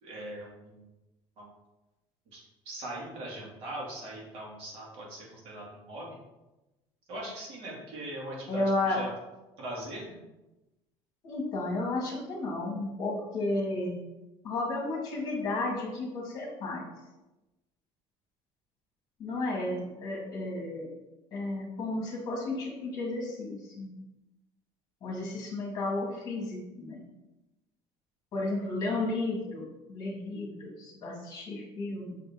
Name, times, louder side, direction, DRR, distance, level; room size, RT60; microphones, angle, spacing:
voice 1, 0.0-0.8 1.4-1.5 2.3-6.2 7.1-9.1 9.6-10.2, right 1 dB, 55° right, -4 dB, 2.2 m, -41 dB
voice 2, 8.5-9.0 11.2-14.0 14.4-16.9 19.2-20.9 21.3-23.9 25.0-27.0 28.3-32.2, left 2 dB, 35° left, -1 dB, 1.7 m, -33 dB
6.4 x 4.2 x 3.6 m, 1.0 s
cardioid pair, 160°, 11 cm